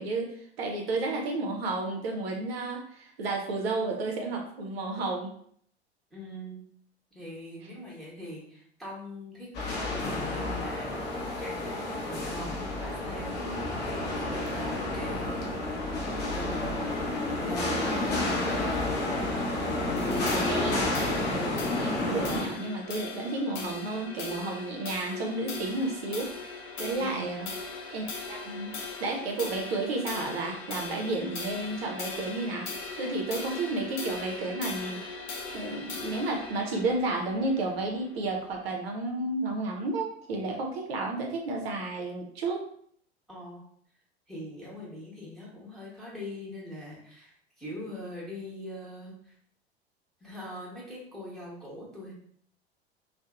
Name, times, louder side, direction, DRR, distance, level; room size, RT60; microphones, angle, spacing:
voice 1, 0.0-5.3 13.4-13.5 16.8-16.9 20.3-20.9 21.3-27.5 27.9-28.8 29.0-32.7 33.0-35.0 35.5-42.7, right 2 dB, 65° right, 1 dB, 0.5 m, -32 dB
voice 2, 6.1-6.6 7.1-11.7 12.0-15.5 16.3-16.9 17.5-18.9 19.7-20.4 27.0-27.4 43.3-43.6 44.3-49.3 50.2-52.1, left 1 dB, ahead, -7 dB, 0.9 m, -42 dB
sound 1, 9.5-22.4, left 2 dB, 30° left, 0.6 m, -30 dB
sound 2, 20.0-38.6, left 3 dB, 70° left, 0.6 m, -39 dB
2.7 x 2.0 x 2.3 m, 0.63 s
figure-of-eight pair, 80°, 33 cm